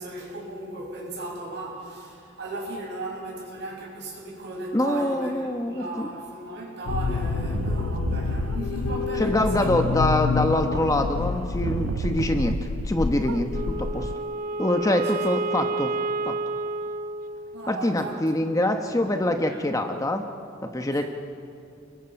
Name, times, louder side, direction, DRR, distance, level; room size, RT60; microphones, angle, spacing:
voice 1, 0.0-9.8 15.1-15.3 17.5-18.3 18.7-18.8 19.5-19.6 20.9-21.1, right 2 dB, 60° right, -2 dB, 7.0 m, -36 dB
voice 2, 4.7-6.1 9.2-12.6 12.8-14.1 14.6-15.9 16.2-16.4 17.7-20.3 20.7-21.0, left 1 dB, 15° left, 5 dB, 1.0 m, -24 dB
sound 1, 6.9-14.2, left 5 dB, 85° left, 0.5 m, -28 dB
sound 2, 7.0-13.0 13.2-14.1, right 5 dB, 90° right, 0.4 m, -34 dB
Wind instrument woodwind instrument, 13.5-17.9, right 3 dB, 40° right, 0.6 m, -30 dB
29.5 x 21.5 x 5.8 m, 2.6 s
head